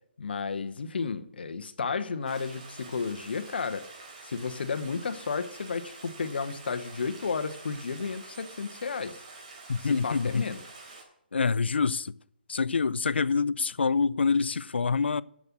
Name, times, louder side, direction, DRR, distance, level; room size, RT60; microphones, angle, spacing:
voice 1, 0.2-3.9 4.2-9.2 9.8-10.6, left 5 dB, 65° left, 1.0 m, -33 dB
Stream, 2.3-11.0, right 3 dB, 40° right, 3.2 m, -47 dB
voice 2, 9.7-10.4 11.3-12.1 12.5-15.2, left 5 dB, 85° left, 0.4 m, -26 dB
7.7 x 7.4 x 7.5 m
hypercardioid pair, 155°, 6 cm